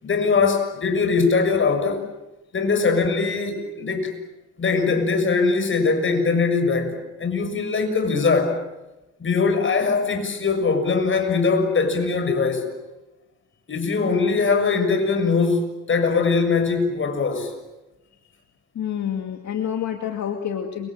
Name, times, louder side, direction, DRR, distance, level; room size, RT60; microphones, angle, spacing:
voice 1, 0.0-2.1 2.5-4.1 4.6-8.6 9.2-12.7 13.7-17.5, left 4 dB, 40° left, 6.8 m, -21 dB
voice 2, 18.7-20.9, left 9 dB, 65° left, 2.4 m, -28 dB
30.0 x 25.5 x 7.6 m
cardioid pair, 90°, 30 cm